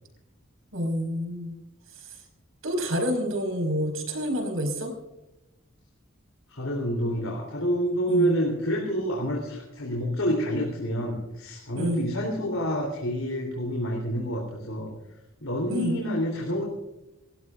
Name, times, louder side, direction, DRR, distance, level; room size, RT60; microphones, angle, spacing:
voice 1, 0.7-1.6 2.0-2.1 2.6-4.9 8.1-8.4 11.7-12.1 15.7-16.0, equal, 75° right, 4 dB, 4.8 m, -28 dB
voice 2, 6.5-14.9 15.4-16.6, equal, 75° left, -1 dB, 3.4 m, -28 dB
28.5 x 15.0 x 2.5 m, 0.98 s
head